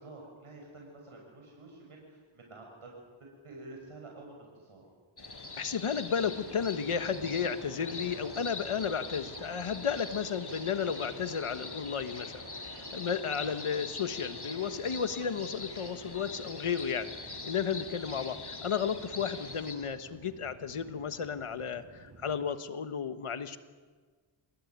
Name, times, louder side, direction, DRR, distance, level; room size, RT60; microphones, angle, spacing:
voice 1, 0.0-2.9 3.2-4.8 13.4-13.5, right 2 dB, 85° right, 0 dB, 6.3 m, -49 dB
sound 1, 5.2-19.8, left 3 dB, 50° left, 5.2 m, -43 dB
voice 2, 5.6-17.1 17.4-23.6, left 7 dB, 85° left, 10 dB, 1.4 m, -33 dB
sound 2, 6.2-22.5, right 4 dB, 50° right, 2.3 m, -53 dB
27.0 x 20.0 x 9.5 m, 1.5 s
cardioid pair, 45°, 50 cm